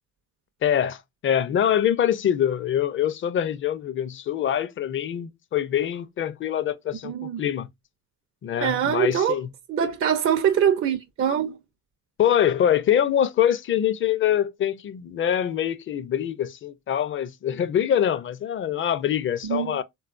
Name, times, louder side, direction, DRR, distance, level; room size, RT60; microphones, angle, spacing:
voice 1, 0.6-7.7 8.4-9.5 12.2-19.8, left 10 dB, 40° left, 0.5 m, -24 dB
voice 2, 7.0-7.4 8.6-9.4 9.7-11.6 19.5-19.8, right 8 dB, 45° right, 0.5 m, -23 dB
3.5 x 2.3 x 2.4 m
cardioid pair, 90°, 30 cm